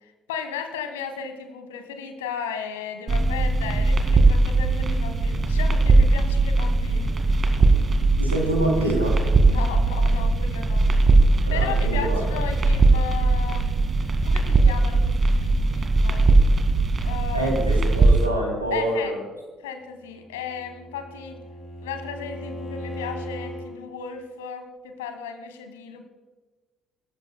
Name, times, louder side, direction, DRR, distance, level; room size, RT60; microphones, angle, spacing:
voice 1, 0.3-7.4 9.4-10.9 11.5-13.7 14.2-16.3 17.0-17.5 18.7-19.2 19.6-21.4 21.8-26.0, left 7 dB, 70° left, 8 dB, 1.4 m, -35 dB
sound 1, 3.1-18.3, right 3 dB, 35° right, 2.0 m, -20 dB
voice 2, 8.2-9.1 11.4-12.2 17.3-19.2, right 1 dB, 85° right, -1 dB, 2.9 m, -26 dB
Bowed string instrument, 20.0-23.7, equal, 45° left, 4.3 m, -37 dB
26.5 x 14.0 x 2.2 m, 1.3 s
figure-of-eight pair, 50°, 0 cm